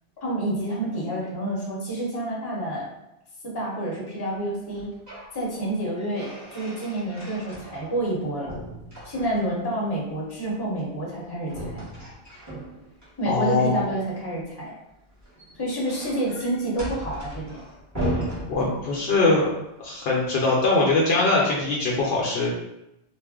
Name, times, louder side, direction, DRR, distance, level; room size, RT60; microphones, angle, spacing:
voice 1, 0.2-2.8 3.4-4.9 5.3-8.6 9.0-11.9 13.2-14.7 15.5-17.6, right 1 dB, 25° left, -5 dB, 0.7 m, -28 dB
sound 1, 4.7-5.3 5.7-8.2 8.5-9.7 11.5-13.1 15.1-19.3, equal, 15° right, 0.9 m, -36 dB
voice 2, 13.3-13.8 18.5-19.5 19.8-22.5, left 3 dB, 65° left, -3 dB, 0.7 m, -22 dB
2.4 x 2.1 x 3.5 m, 0.87 s
omnidirectional pair, 1.2 m